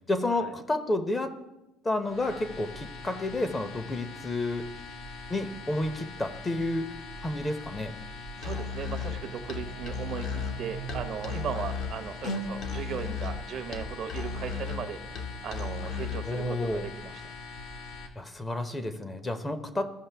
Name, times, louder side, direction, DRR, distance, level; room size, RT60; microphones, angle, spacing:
voice 1, 0.1-1.3 1.8-4.7 5.3-6.9 7.2-7.9 16.2-16.9 18.2-19.9, left 2 dB, 20° left, 9 dB, 0.7 m, -30 dB
sound 1, 2.0-18.1, left 3 dB, 75° left, 1.3 m, -43 dB
Musical instrument, 8.4-16.3, left 5 dB, 55° left, 1.1 m, -35 dB
voice 2, 8.4-17.2, right 7 dB, 50° right, 9 dB, 0.7 m, -37 dB
sound 2, 9.0-12.8, right 9 dB, 90° right, 0.5 m, -45 dB
14.5 x 5.2 x 3.4 m, 0.95 s
cardioid pair, 115°, 0 cm